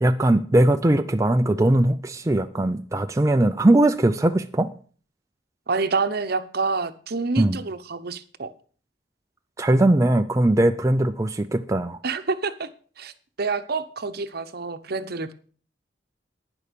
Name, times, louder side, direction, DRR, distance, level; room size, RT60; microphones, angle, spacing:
voice 1, 0.0-4.7 7.4-7.6 9.6-12.0, right 1 dB, 15° right, 7 dB, 0.5 m, -20 dB
voice 2, 5.7-8.5 12.0-12.7 13.0-13.1 13.4-15.3, right 4 dB, 55° right, 11 dB, 0.9 m, -27 dB
11.0 x 9.9 x 5.2 m, 0.42 s
head